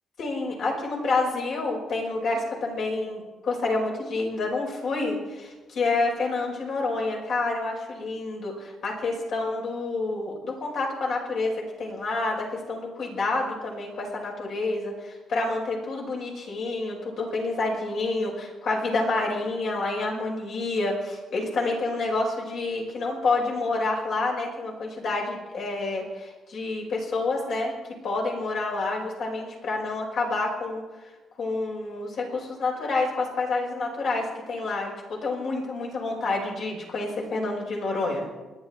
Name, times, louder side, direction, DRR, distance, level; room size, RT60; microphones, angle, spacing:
voice 1, 0.2-27.7 28.0-30.8 31.4-38.3, left 3 dB, 70° left, -2 dB, 5.4 m, -28 dB
28.0 x 10.5 x 4.4 m, 1.2 s
cardioid pair, 90°, 0 cm